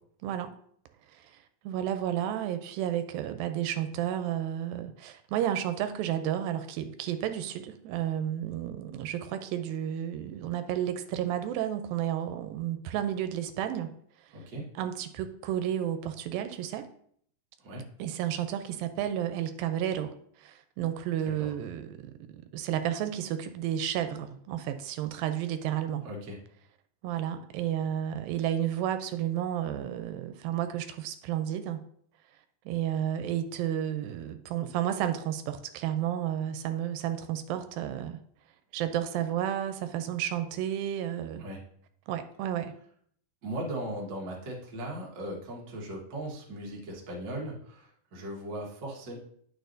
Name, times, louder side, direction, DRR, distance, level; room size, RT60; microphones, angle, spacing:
voice 1, 1.6-13.9 14.8-16.9 18.0-20.1 20.4-26.1 27.0-31.8 32.7-38.2 38.7-41.4 42.1-42.7, right 11 dB, 90° right, 8 dB, 2.3 m, -32 dB
voice 2, 14.3-14.6 17.6-17.8 21.2-21.5 26.0-26.4 41.4-41.6 43.4-49.2, right 1 dB, 50° right, -3 dB, 1.4 m, -38 dB
9.2 x 6.4 x 2.6 m, 0.64 s
omnidirectional pair, 4.0 m